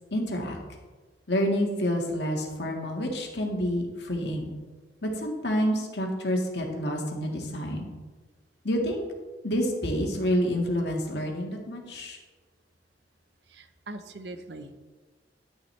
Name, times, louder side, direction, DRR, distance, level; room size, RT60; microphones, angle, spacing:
voice 1, 0.1-0.6 1.3-4.5 5.0-7.9 8.6-9.0 9.4-12.2, equal, 70° left, 1 dB, 1.8 m, -28 dB
voice 2, 13.5-14.8, right 2 dB, 70° right, 9 dB, 0.8 m, -41 dB
11.0 x 10.5 x 3.3 m, 1.3 s
head